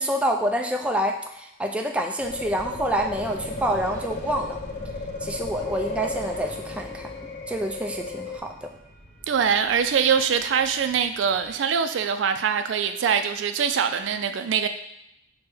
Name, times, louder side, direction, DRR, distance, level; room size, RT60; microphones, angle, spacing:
voice 1, 0.0-4.6 5.2-7.1 7.5-8.7, right 1 dB, 5° right, 0.3 m, -27 dB
sound 1, 2.2-8.4, left 4 dB, 65° left, 0.4 m, -34 dB
sound 2, 2.2-11.5, equal, 35° left, 0.8 m, -43 dB
voice 2, 9.3-14.7, right 7 dB, 85° right, 0.3 m, -23 dB
6.1 x 2.2 x 3.3 m
head